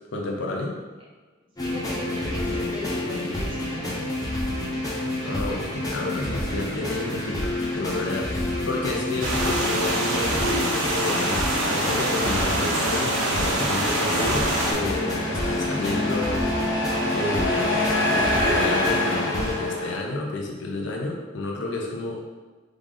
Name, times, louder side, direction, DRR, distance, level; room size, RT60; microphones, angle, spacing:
voice 1, 0.1-0.8 5.2-16.5 17.1-17.8 18.1-22.2, left 2 dB, 65° left, -1 dB, 0.5 m, -30 dB
sound 1, 1.6-19.5, left 1 dB, 20° left, 0.6 m, -29 dB
voice 2, 1.6-4.1 8.1-8.4, equal, 25° right, -4 dB, 0.6 m, -37 dB
sound 2, 9.2-14.7, right 1 dB, 85° right, 0.7 m, -25 dB
Truck, 11.0-20.0, left 1 dB, 85° left, 1.3 m, -28 dB
3.2 x 2.4 x 3.7 m, 1.3 s
head